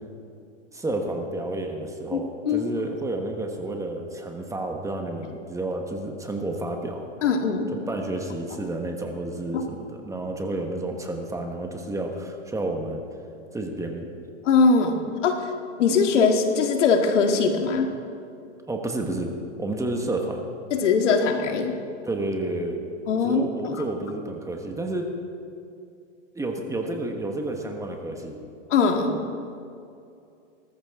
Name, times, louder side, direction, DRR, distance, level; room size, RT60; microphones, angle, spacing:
voice 1, 0.7-7.0 7.9-13.0 13.5-14.1 18.7-19.3 19.6-20.4 22.0-22.8 23.2-25.1 26.3-28.4, right 2 dB, 10° right, 3 dB, 1.3 m, -30 dB
voice 2, 2.1-2.7 7.2-7.7 14.4-15.0 15.2-15.5 15.8-17.9 20.7-21.8 23.1-23.8 28.7-29.2, left 5 dB, 75° left, 4 dB, 2.0 m, -21 dB
19.0 x 14.0 x 3.7 m, 2.5 s
hypercardioid pair, 125°, 36 cm